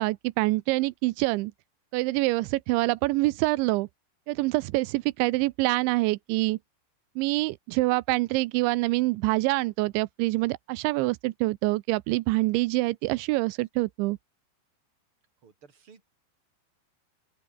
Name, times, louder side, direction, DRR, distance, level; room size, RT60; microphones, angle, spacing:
voice 1, 0.0-1.5 1.9-3.9 4.3-6.6 7.2-14.2, right 21 dB, 90° right, 3.1 m, -26 dB
voice 2, 15.4-16.1, right 6 dB, 30° right, 4.0 m, -54 dB
open air
omnidirectional pair, 5.2 m